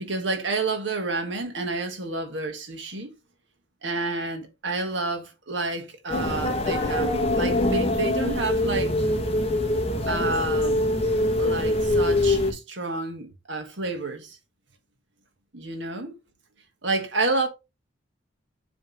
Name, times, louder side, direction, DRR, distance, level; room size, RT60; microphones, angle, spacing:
voice 1, 0.0-3.1 3.8-8.9 10.1-10.8 11.4-14.4 15.5-16.1 16.8-17.5, right 3 dB, 80° right, 1.6 m, -29 dB
sound 1, 6.1-12.5, left 1 dB, 35° left, 1.2 m, -24 dB
7.4 x 3.4 x 4.1 m
head